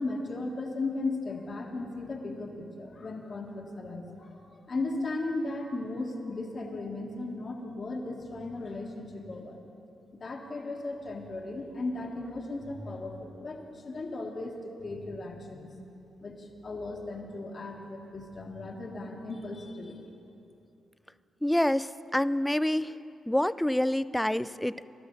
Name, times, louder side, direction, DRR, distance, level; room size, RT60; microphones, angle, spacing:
voice 1, 0.0-9.6 10.2-15.8 16.2-20.2, left 2 dB, 45° left, 1 dB, 1.8 m, -36 dB
voice 2, 21.4-22.9 23.3-24.9, left 1 dB, 5° left, 16 dB, 0.4 m, -27 dB
22.5 x 12.0 x 4.1 m, 2.7 s
supercardioid pair, 60°, 0 cm